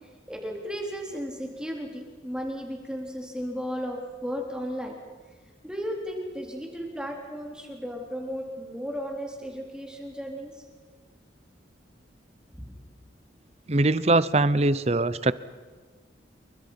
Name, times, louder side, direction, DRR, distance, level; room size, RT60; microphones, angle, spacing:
voice 1, 0.3-5.0 5.6-10.5, equal, 5° right, 1 dB, 3.7 m, -34 dB
voice 2, 13.7-15.3, right 2 dB, 35° right, 16 dB, 0.7 m, -22 dB
28.5 x 24.0 x 5.8 m, 1.4 s
head